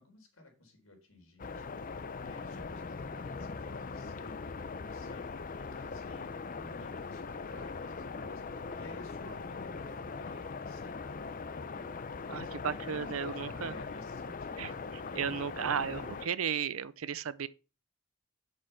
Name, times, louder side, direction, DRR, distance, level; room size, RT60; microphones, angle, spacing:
voice 1, 0.0-11.2 11.6-11.9 12.2-16.2, left 2 dB, 90° left, 4.0 m, -54 dB
sound 1, 1.4-16.3, left 4 dB, 40° left, 0.6 m, -41 dB
voice 2, 12.3-13.7 14.6-14.7 15.1-17.5, right 7 dB, 80° right, 0.6 m, -34 dB
7.8 x 6.5 x 5.7 m
head